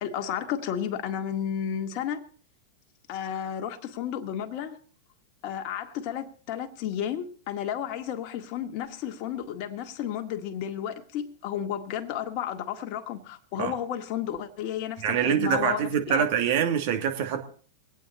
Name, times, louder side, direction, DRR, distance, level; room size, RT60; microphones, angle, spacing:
voice 1, 0.0-2.2 3.1-4.8 5.4-16.2, left 9 dB, 50° left, 1.8 m, -32 dB
voice 2, 15.0-17.4, right 8 dB, 60° right, 2.6 m, -25 dB
23.0 x 9.2 x 4.2 m
hypercardioid pair, 110°, 0 cm